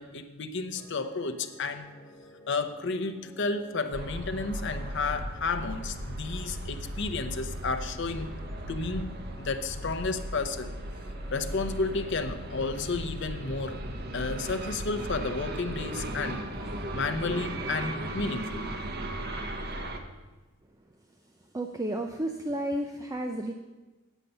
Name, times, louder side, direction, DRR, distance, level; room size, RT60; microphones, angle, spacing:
voice 1, 0.0-1.9 2.5-8.3 8.7-10.7 11.3-13.8 14.1-16.4 16.9-18.7, left 3 dB, 55° left, 9 dB, 0.7 m, -32 dB
sound 1, 0.7-15.7, equal, 15° left, 0.9 m, -53 dB
sound 2, 3.9-20.0, right 1 dB, 50° right, 0.9 m, -37 dB
voice 2, 21.5-23.5, right 1 dB, 15° right, 3 dB, 0.4 m, -32 dB
8.8 x 8.2 x 5.4 m, 1.2 s
head